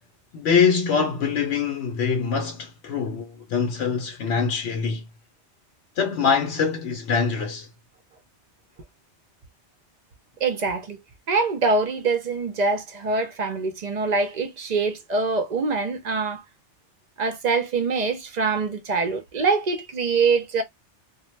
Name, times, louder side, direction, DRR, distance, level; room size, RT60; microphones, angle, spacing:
voice 1, 0.3-5.0 6.0-7.7, left 6 dB, 70° left, 0.8 m, -24 dB
voice 2, 10.4-11.0 11.3-16.4 17.2-20.6, right 4 dB, 50° right, 0.5 m, -24 dB
2.1 x 2.1 x 3.1 m
omnidirectional pair, 1.2 m